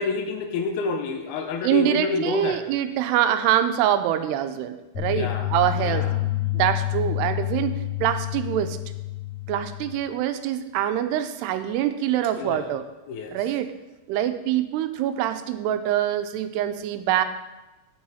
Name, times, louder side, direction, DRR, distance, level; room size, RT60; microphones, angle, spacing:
voice 1, 0.0-2.6 5.1-6.2 12.4-12.7 13.1-13.4, left 4 dB, 75° left, 5 dB, 2.7 m, -29 dB
voice 2, 1.6-6.1 6.5-8.8 9.5-12.8 13.3-13.7 14.1-17.2, right 11 dB, 90° right, 9 dB, 2.7 m, -24 dB
sound 1, 4.9-9.9, left 16 dB, 45° left, 3.2 m, -28 dB
9.5 x 9.4 x 4.2 m, 1.1 s
omnidirectional pair, 4.7 m